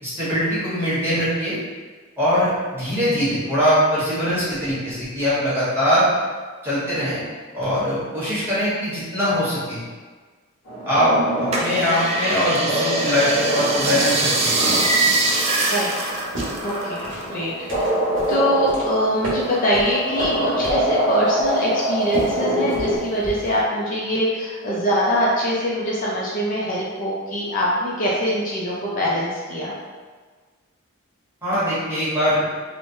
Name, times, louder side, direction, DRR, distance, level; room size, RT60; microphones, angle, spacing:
voice 1, 0.0-1.5 2.2-6.1 6.6-7.2 7.5-9.8 10.9-11.1 11.4-14.7 31.4-32.4, equal, 10° right, -12 dB, 1.2 m, -22 dB
sound 1, 10.7-23.0, equal, 80° left, 1.0 m, -25 dB
sound 2, 11.5-17.4 17.6-18.9 19.4-20.2 20.7-20.8, right 2 dB, 30° right, 0.3 m, -23 dB
voice 2, 15.7-16.1 16.6-17.9 18.3-29.8, equal, 40° left, -5 dB, 0.4 m, -23 dB
sound 3, 16.1-23.6, right 1 dB, 65° right, 1.3 m, -34 dB
3.0 x 2.1 x 2.6 m, 1.4 s
head